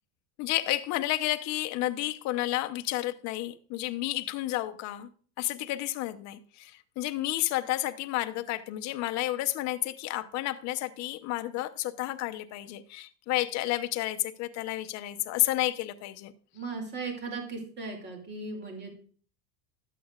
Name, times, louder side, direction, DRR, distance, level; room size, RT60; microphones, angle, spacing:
voice 1, 0.4-5.1 5.4-16.3, left 16 dB, 40° left, 0.7 m, -31 dB
voice 2, 16.5-18.9, right 3 dB, 25° right, 2.5 m, -37 dB
12.5 x 8.4 x 2.4 m
supercardioid pair, 150°, 41 cm